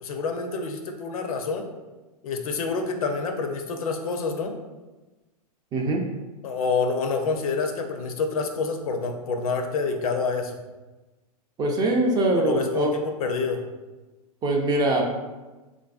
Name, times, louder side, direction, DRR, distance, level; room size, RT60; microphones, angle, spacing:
voice 1, 0.0-1.6 2.2-4.6 6.4-10.6 12.3-12.9 13.2-13.6, left 4 dB, 65° left, 5 dB, 0.5 m, -27 dB
voice 2, 5.7-6.0 11.6-12.9 14.4-15.0, right 2 dB, 20° right, 1 dB, 0.3 m, -22 dB
3.2 x 2.5 x 2.3 m, 1.2 s
hypercardioid pair, 110°, 20 cm